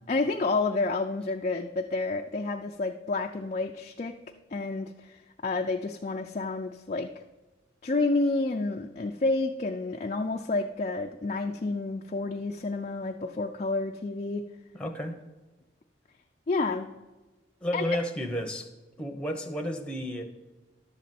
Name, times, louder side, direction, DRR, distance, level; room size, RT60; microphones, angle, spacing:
voice 1, 0.1-4.1 4.5-7.1 7.8-14.4 16.5-16.9 17.7-17.8, left 3 dB, 35° left, 3 dB, 0.4 m, -29 dB
voice 2, 14.7-15.2 17.6-18.7 19.0-20.2, equal, 5° left, 3 dB, 0.9 m, -32 dB
11.5 x 4.0 x 7.6 m, 1.2 s
head